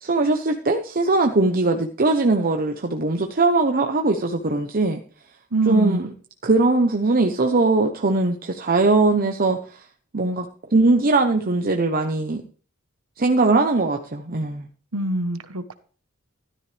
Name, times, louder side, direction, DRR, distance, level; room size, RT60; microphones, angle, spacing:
voice 1, 0.0-5.0 5.7-6.1 6.4-9.8 10.1-10.5 10.7-12.4 13.2-14.7, right 3 dB, 45° right, 1.0 m, -20 dB
voice 2, 5.5-6.1 14.9-15.7, right 2 dB, 85° right, 1.3 m, -24 dB
13.0 x 13.0 x 3.4 m
head